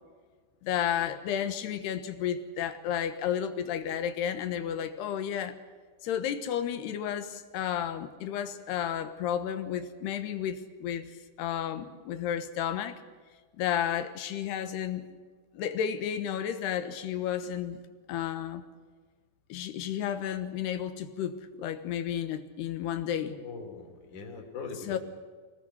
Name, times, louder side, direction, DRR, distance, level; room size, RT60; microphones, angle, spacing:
voice 1, 0.6-5.6 6.0-13.0 13.6-15.1 15.5-17.8 18.1-18.6 19.5-23.4 24.8-25.0, left 9 dB, 70° left, 9 dB, 2.8 m, -32 dB
voice 2, 23.3-25.0, left 4 dB, 40° left, 3 dB, 4.4 m, -41 dB
25.0 x 19.0 x 8.1 m, 1.5 s
omnidirectional pair, 5.8 m